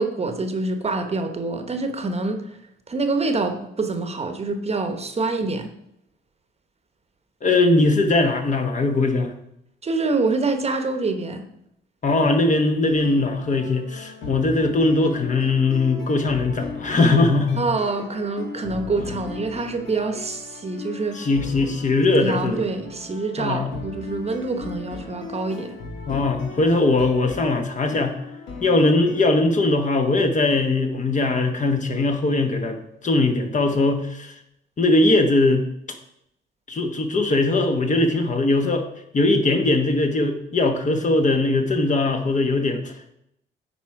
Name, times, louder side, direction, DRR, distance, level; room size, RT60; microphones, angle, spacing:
voice 1, 0.0-2.4 2.9-5.7 9.8-11.4 17.6-21.3 22.2-25.8, right 3 dB, 30° right, 7 dB, 1.0 m, -26 dB
voice 2, 7.4-9.3 12.0-17.7 21.1-22.6 23.4-23.7 26.1-28.1 28.6-34.3 34.8-35.6 36.7-38.9 39.1-42.9, left 2 dB, 40° left, 5 dB, 1.1 m, -20 dB
sound 1, 12.8-29.2, left 4 dB, 75° left, 1.5 m, -37 dB
9.6 x 4.3 x 4.7 m, 0.77 s
cardioid pair, 90°, 20 cm